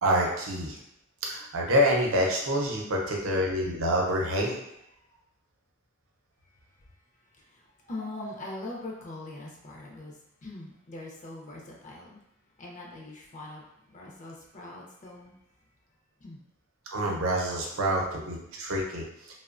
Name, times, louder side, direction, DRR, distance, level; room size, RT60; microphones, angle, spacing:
voice 1, 0.0-0.8 1.2-4.5 8.2-8.3 16.9-19.0, equal, 80° right, -1 dB, 0.6 m, -27 dB
voice 2, 7.3-12.2 12.6-15.4 16.2-16.4, left 2 dB, 35° left, -2 dB, 0.4 m, -42 dB
2.9 x 2.1 x 2.4 m, 0.81 s
head